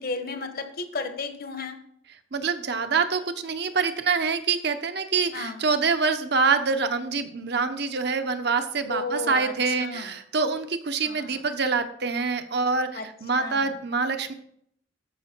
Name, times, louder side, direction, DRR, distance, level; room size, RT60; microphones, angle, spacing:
voice 1, 0.0-1.8 5.3-5.5 8.9-9.5 9.8-10.1 11.0-11.3 12.9-13.1 13.4-13.7, left 3 dB, 50° left, 7 dB, 1.2 m, -33 dB
voice 2, 2.1-14.3, right 4 dB, 55° right, 8 dB, 0.9 m, -26 dB
13.0 x 5.5 x 4.5 m, 0.68 s
head